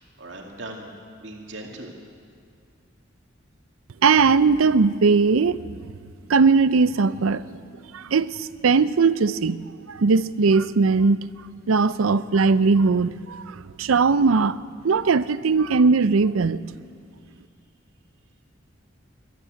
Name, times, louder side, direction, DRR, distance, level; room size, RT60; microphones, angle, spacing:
voice 1, 0.2-0.9 1.2-1.9, right 2 dB, 60° right, 2.3 m, -38 dB
voice 2, 4.0-5.6 6.3-7.4 7.9-11.2 11.7-16.6, right 4 dB, 90° right, 0.5 m, -19 dB
21.0 x 13.5 x 9.4 m
head